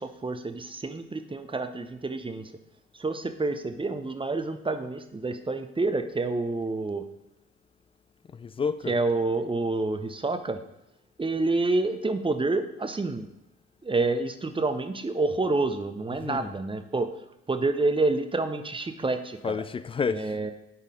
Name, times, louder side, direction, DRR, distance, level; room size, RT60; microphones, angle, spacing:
voice 1, 0.0-2.5 2.9-7.1 8.9-10.6 11.2-13.3 13.8-17.1 17.5-19.6 20.1-20.5, right 3 dB, 15° right, 0.7 m, -28 dB
voice 2, 8.3-9.0 16.1-16.5 19.4-20.4, left 5 dB, 15° left, 0.3 m, -30 dB
10.5 x 4.1 x 3.7 m
hypercardioid pair, 50°, 33 cm